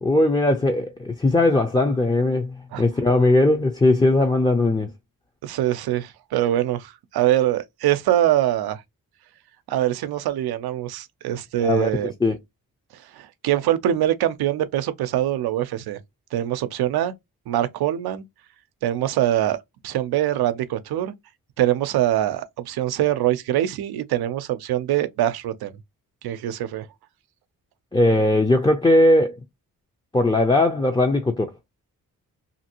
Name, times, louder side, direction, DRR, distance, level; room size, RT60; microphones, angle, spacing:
voice 1, 0.0-4.9 11.6-11.9 12.2-12.4 27.9-29.4 30.1-31.5, left 2 dB, 15° left, 0.5 m, -19 dB
voice 2, 5.4-8.8 9.7-12.1 12.9-16.0 16.3-17.1 17.5-18.2 18.8-19.6 19.8-21.1 21.6-25.7 26.2-26.9, right 12 dB, 90° right, 0.5 m, -23 dB
2.6 x 2.5 x 2.8 m
cardioid pair, 70°, 36 cm